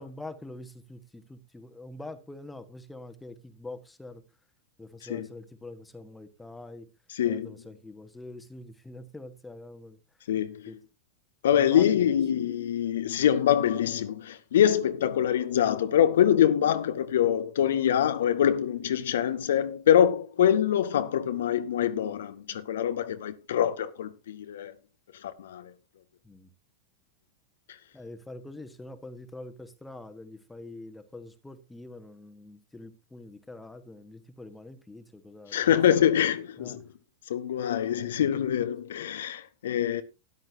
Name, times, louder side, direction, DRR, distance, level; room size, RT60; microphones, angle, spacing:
voice 1, 0.0-4.2 4.8-6.9 7.3-10.0 10.7-10.8 11.5-12.0 26.2-26.5 27.9-35.8 36.6-36.8, left 2 dB, 5° left, 1.3 m, -45 dB
voice 2, 7.1-7.5 10.3-10.7 11.4-24.7 25.1-25.7 27.7-27.8 35.5-36.9 37.3-40.0, left 10 dB, 60° left, 0.7 m, -25 dB
13.5 x 10.5 x 2.7 m
figure-of-eight pair, 90°, 0 cm